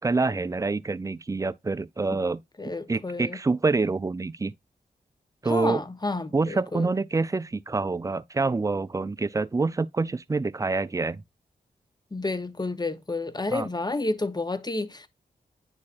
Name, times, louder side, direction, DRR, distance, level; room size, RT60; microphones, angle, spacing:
voice 1, 0.0-2.4 2.9-4.5 5.4-5.8 6.3-11.2 13.5-13.7, right 3 dB, 20° right, 0.4 m, -26 dB
voice 2, 2.6-3.4 5.5-6.9 12.1-15.1, left 2 dB, 25° left, 0.7 m, -30 dB
9.6 x 4.2 x 2.4 m
cardioid pair, 45°, 17 cm